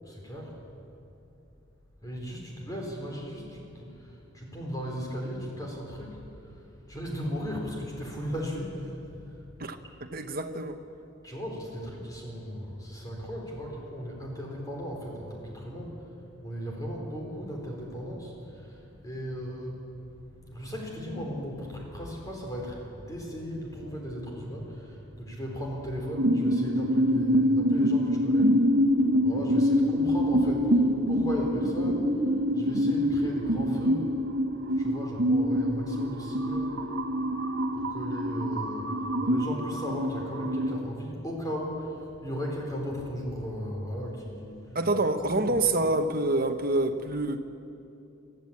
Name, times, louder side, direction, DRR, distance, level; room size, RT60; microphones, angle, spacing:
voice 1, 0.0-0.5 2.0-9.0 11.2-16.0 16.4-28.5 29.2-34.1 34.8-36.8 37.7-44.6, equal, 20° left, -1 dB, 4.0 m, -36 dB
voice 2, 9.6-10.8 44.7-47.4, right 2 dB, 45° right, 7 dB, 1.1 m, -27 dB
sound 1, 26.1-40.8, equal, 75° right, 1.4 m, -25 dB
22.5 x 13.5 x 8.6 m, 2.7 s
head